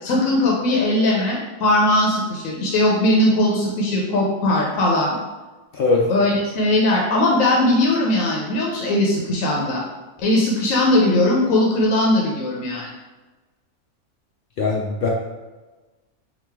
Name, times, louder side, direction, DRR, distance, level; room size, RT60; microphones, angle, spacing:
voice 1, 0.0-5.2 6.1-9.8 10.2-12.9, left 1 dB, 80° left, -2 dB, 1.1 m, -19 dB
voice 2, 14.6-15.1, left 4 dB, 60° left, -2 dB, 0.6 m, -20 dB
3.9 x 2.4 x 4.5 m, 1.2 s
omnidirectional pair, 1.4 m